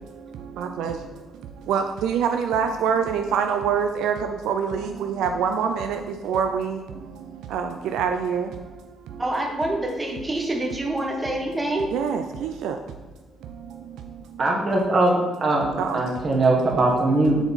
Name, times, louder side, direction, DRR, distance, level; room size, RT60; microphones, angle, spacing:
voice 1, 0.6-0.9 1.7-4.1 4.5-6.8 7.5-8.5 11.9-12.8 15.8-16.0, right 7 dB, 85° right, 5 dB, 0.3 m, -25 dB
voice 2, 9.2-11.9, right 1 dB, 15° right, 1 dB, 1.2 m, -26 dB
voice 3, 14.4-17.4, right 2 dB, 45° right, -2 dB, 1.4 m, -21 dB
6.8 x 3.8 x 4.1 m, 1.2 s
cardioid pair, 90°, 0 cm